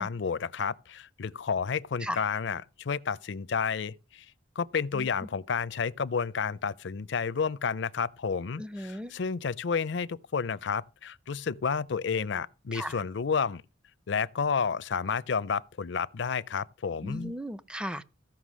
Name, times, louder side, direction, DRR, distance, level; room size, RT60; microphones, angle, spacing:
voice 1, 0.0-4.3 4.6-13.6 14.1-17.3, left 6 dB, 65° left, 0.5 m, -31 dB
voice 2, 8.6-9.1 12.7-13.0 17.0-18.0, equal, 5° right, 0.5 m, -36 dB
15.0 x 5.9 x 6.2 m
head